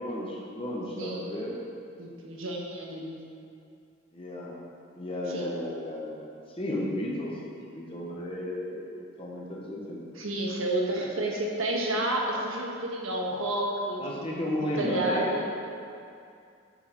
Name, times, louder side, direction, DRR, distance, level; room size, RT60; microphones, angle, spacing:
voice 1, 0.0-1.5 4.1-4.6 4.9-8.8 9.2-10.0 14.0-15.3, left 1 dB, 25° left, -3 dB, 1.0 m, -33 dB
voice 2, 2.0-3.2 5.3-5.5 10.1-15.4, right 1 dB, 75° right, -2 dB, 1.3 m, -30 dB
9.8 x 4.8 x 4.3 m, 2.4 s
head